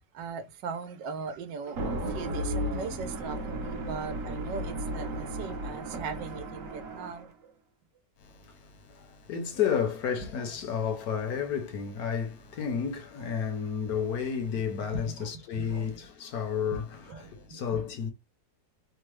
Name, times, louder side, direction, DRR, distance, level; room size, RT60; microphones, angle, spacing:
voice 1, 0.1-7.5 14.9-16.1 17.1-17.8, right 5 dB, 85° right, 1.3 m, -39 dB
sound 1, 1.7-7.3, right 1 dB, 55° right, 1.0 m, -34 dB
voice 2, 8.2-18.1, left 7 dB, 65° left, 1.1 m, -32 dB
3.5 x 2.0 x 3.1 m
omnidirectional pair, 1.9 m